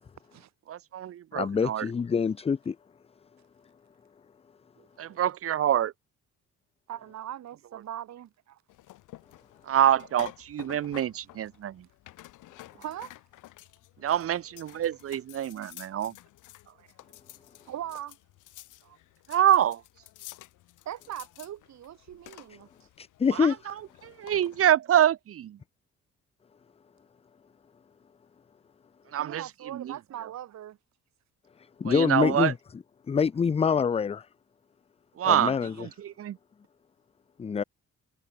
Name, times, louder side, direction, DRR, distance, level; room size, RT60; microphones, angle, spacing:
voice 1, 0.7-1.9 5.0-5.9 9.6-11.9 14.0-16.1 19.3-19.8 23.3-23.7 24.0-25.6 29.1-29.9 31.8-32.5 35.2-36.4, right 10 dB, 50° right, 0.7 m, -26 dB
voice 2, 1.3-2.8 23.0-23.6 31.6-32.5 33.1-34.3 35.2-35.9 37.4-37.6, left 6 dB, 20° left, 0.4 m, -26 dB
voice 3, 6.9-8.6 12.7-13.1 16.8-16.9 17.6-18.2 18.8-19.0 20.8-22.7 29.2-30.8, right 11 dB, 65° right, 1.8 m, -40 dB
sound 1, 8.7-24.6, left 16 dB, 90° left, 2.7 m, -51 dB
cardioid pair, 90°, 30 cm